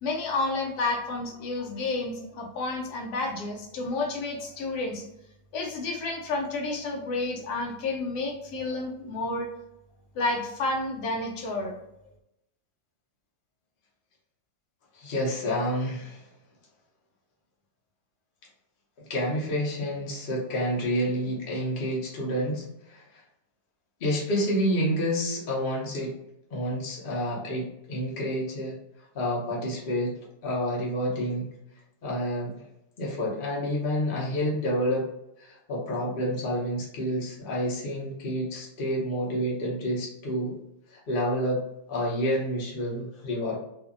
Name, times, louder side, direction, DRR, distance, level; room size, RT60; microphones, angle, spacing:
voice 1, 0.0-5.1 5.5-9.5 10.1-11.8, left 3 dB, 80° left, 1 dB, 1.2 m, -30 dB
voice 2, 14.9-16.3 19.0-23.2 24.0-26.2 26.5-28.8 29.1-30.2 30.4-31.5 32.0-32.5 33.0-35.1 35.4-40.6 40.9-41.6 41.9-43.6, equal, 45° left, -3 dB, 0.8 m, -29 dB
2.6 x 2.5 x 2.5 m, 0.84 s
omnidirectional pair, 1.7 m